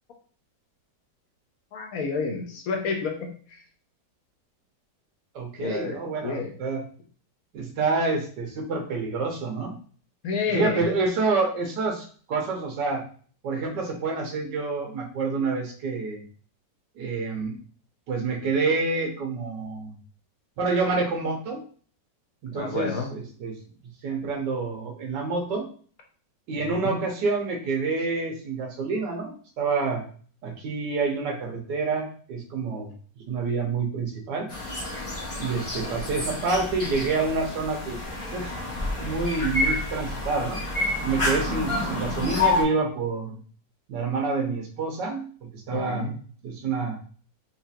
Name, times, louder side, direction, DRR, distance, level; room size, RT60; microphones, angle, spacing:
voice 1, 1.7-3.6 5.6-6.5 10.2-10.9 22.5-23.1 26.6-27.0 45.7-46.1, left 5 dB, 65° left, 3 dB, 1.0 m, -30 dB
voice 2, 5.3-6.8 7.5-9.7 10.5-13.0 13.4-16.2 17.0-17.5 18.1-19.9 20.6-21.6 22.4-23.6 24.0-25.7 26.5-30.0 30.4-32.9 33.3-34.5 35.4-38.0 38.3-38.5 39.0-40.6 41.0-43.4 43.9-45.2 45.7-46.2 46.4-47.0, right 4 dB, 75° right, 1 dB, 1.6 m, -27 dB
sound 1, 34.5-42.6, left 2 dB, 30° left, 0.6 m, -29 dB
4.3 x 2.4 x 2.7 m, 0.43 s
omnidirectional pair, 1.9 m